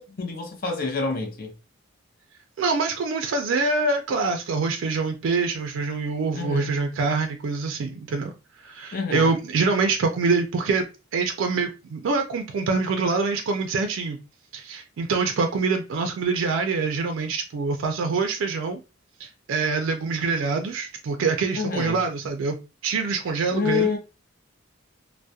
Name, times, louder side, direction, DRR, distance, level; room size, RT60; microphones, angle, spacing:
voice 1, 0.0-1.5 6.3-6.7 8.9-9.3 21.5-22.0 23.5-24.0, left 5 dB, 45° left, 0.6 m, -27 dB
voice 2, 2.6-8.3 8.6-14.2 14.5-18.8 19.2-22.6 22.8-23.9, right 4 dB, 75° right, 0.3 m, -25 dB
2.2 x 2.0 x 2.7 m
head